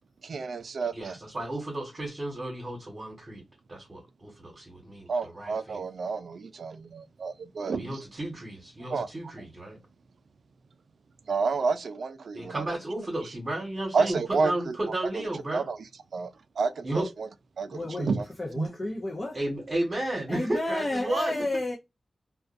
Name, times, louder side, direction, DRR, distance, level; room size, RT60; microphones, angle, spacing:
voice 1, 0.2-1.2 5.1-8.0 8.9-9.1 11.3-12.7 13.9-14.8 15.5-15.8 16.1-16.3 16.6-17.3 17.6-18.2, right 4 dB, 75° right, 0.3 m, -30 dB
voice 2, 0.9-3.4 3.7-5.8 7.7-9.8 12.3-15.6 16.8-17.1 18.0-18.1 18.5-18.7 19.3-21.4, right 1 dB, 35° right, 1.1 m, -33 dB
voice 3, 17.7-19.4 20.3-21.8, left 1 dB, 25° left, 0.6 m, -32 dB
2.5 x 2.3 x 2.4 m
wide cardioid pair, 125°, 0 cm